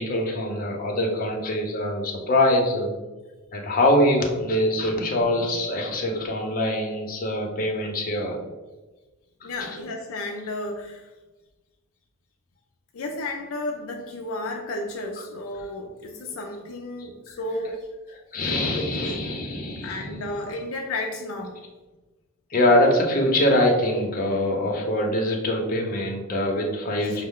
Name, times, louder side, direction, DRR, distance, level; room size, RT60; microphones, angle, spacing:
voice 1, 0.0-2.9 3.5-8.4 9.4-9.8 17.0-17.1 17.6-17.7 18.1-20.5 22.5-27.2, left 1 dB, 45° left, 0 dB, 0.7 m, -24 dB
voice 2, 9.4-11.1 12.9-17.9 18.4-19.2 19.8-21.6 27.0-27.2, left 2 dB, 80° left, 1 dB, 0.5 m, -33 dB
5.2 x 2.1 x 3.6 m, 1.2 s
head